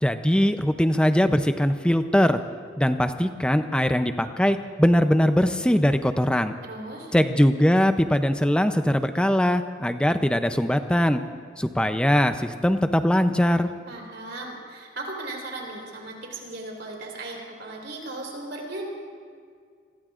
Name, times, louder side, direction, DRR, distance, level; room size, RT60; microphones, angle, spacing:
voice 1, 0.0-2.4 2.8-6.5 7.1-11.2 11.6-13.7, equal, 5° left, 8 dB, 0.5 m, -21 dB
voice 2, 6.7-7.1 13.9-18.9, right 2 dB, 85° right, -1 dB, 4.0 m, -37 dB
27.0 x 21.0 x 2.5 m, 2.1 s
head